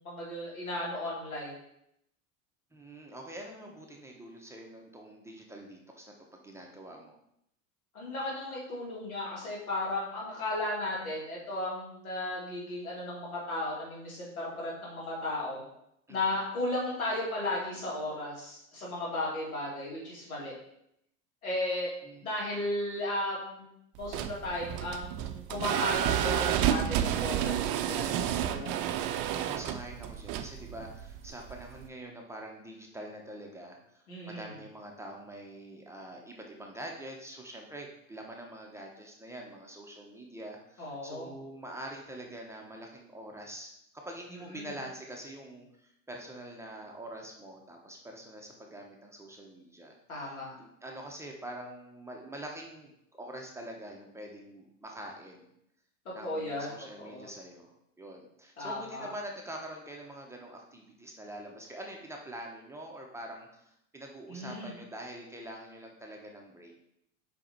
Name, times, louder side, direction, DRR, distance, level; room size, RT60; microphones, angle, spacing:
voice 1, 0.0-1.6 7.9-15.6 16.1-20.5 21.4-21.9 22.2-23.7 24.0-28.7 34.1-34.5 40.8-41.3 44.3-44.7 50.1-50.6 56.2-57.3 58.6-59.1 64.3-64.7, left 1 dB, 90° left, -4 dB, 2.7 m, -35 dB
voice 2, 2.7-7.2 16.1-16.3 22.0-22.4 29.3-43.7 44.0-55.5 56.1-57.7 58.0-66.7, right 1 dB, 5° right, 0 dB, 1.1 m, -45 dB
sound 1, 24.0-31.9, right 11 dB, 50° right, 0.6 m, -31 dB
5.2 x 4.8 x 4.5 m, 0.77 s
hypercardioid pair, 90°, 41 cm